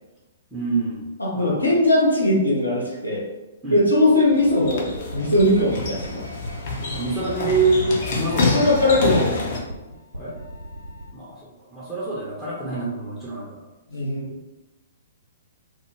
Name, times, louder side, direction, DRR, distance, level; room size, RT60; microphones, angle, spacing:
voice 1, 0.5-1.6 3.6-3.8 6.9-8.5 10.1-10.3 11.1-13.7, right 3 dB, ahead, -9 dB, 0.7 m, -26 dB
voice 2, 1.2-3.2 3.7-6.3 8.4-9.5 13.9-14.4, left 1 dB, 90° left, -4 dB, 0.8 m, -20 dB
sound 1, 4.0-9.6, left 3 dB, 50° left, 0.6 m, -28 dB
sound 2, 4.9-11.1, right 1 dB, 90° right, 0.5 m, -39 dB
2.2 x 2.1 x 3.2 m, 1.1 s
figure-of-eight pair, 115°, 0 cm